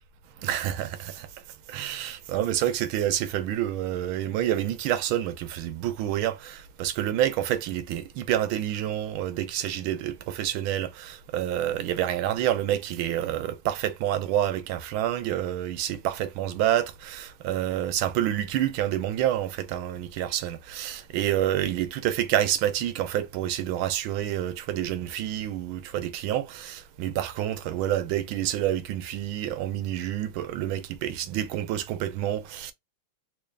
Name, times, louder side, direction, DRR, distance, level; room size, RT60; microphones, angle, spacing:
voice 1, 0.4-1.3 1.7-32.7, right 12 dB, 80° right, 1.5 m, -28 dB
3.7 x 3.4 x 2.4 m
omnidirectional pair, 2.3 m